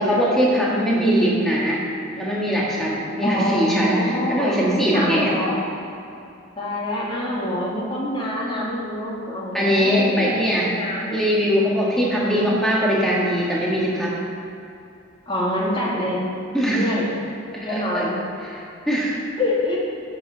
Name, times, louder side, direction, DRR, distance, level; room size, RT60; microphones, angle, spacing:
voice 1, 0.0-1.8 2.1-5.3 9.5-10.7 11.1-14.2 16.5-16.9 17.5-18.0 18.4-19.2, equal, ahead, -6 dB, 1.7 m, -21 dB
voice 2, 3.2-4.6 4.9-5.6 6.6-11.2 12.0-12.5 15.3-16.2 16.7-17.1 17.6-18.2 19.4-19.8, left 1 dB, 25° left, -5 dB, 1.9 m, -26 dB
8.6 x 6.9 x 6.2 m, 2.7 s
head